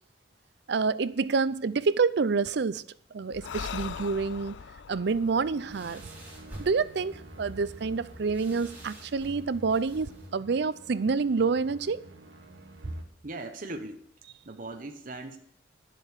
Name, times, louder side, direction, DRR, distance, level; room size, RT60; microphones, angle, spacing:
voice 1, 0.7-2.8 3.1-4.6 4.9-6.0 6.6-12.1, right 4 dB, 65° right, 0.5 m, -28 dB
Breathing, 3.3-6.9, left 6 dB, 80° left, 0.4 m, -41 dB
sound 1, 5.0-10.3, right 1 dB, 10° right, 4.0 m, -47 dB
sound 2, 5.5-13.0, right 2 dB, 80° right, 1.5 m, -51 dB
voice 2, 13.2-14.0 14.4-15.4, right 2 dB, 50° right, 1.0 m, -38 dB
10.5 x 7.6 x 6.5 m
head